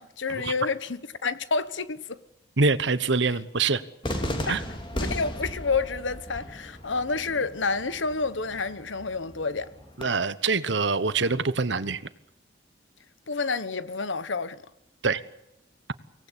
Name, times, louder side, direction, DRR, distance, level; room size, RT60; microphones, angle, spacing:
voice 1, 0.0-2.2 4.5-4.6 4.9-9.7 13.3-14.6, left 4 dB, 85° left, 1.2 m, -29 dB
voice 2, 2.6-3.8 4.5-4.6 10.0-12.0 15.0-15.2, right 4 dB, 75° right, 1.1 m, -25 dB
Cheering / Fireworks, 4.0-10.0, left 1 dB, 25° left, 3.0 m, -36 dB
24.5 x 18.5 x 8.4 m
head